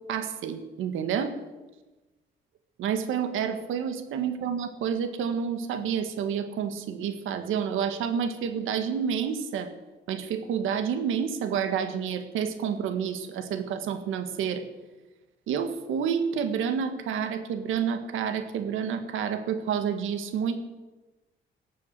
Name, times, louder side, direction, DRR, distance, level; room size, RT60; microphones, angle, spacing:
voice 1, 0.1-1.3 2.8-9.7 10.1-14.6 15.5-20.5, right 7 dB, 85° right, 8 dB, 1.8 m, -29 dB
18.5 x 7.2 x 8.2 m, 1.1 s
cardioid pair, 90°, 20 cm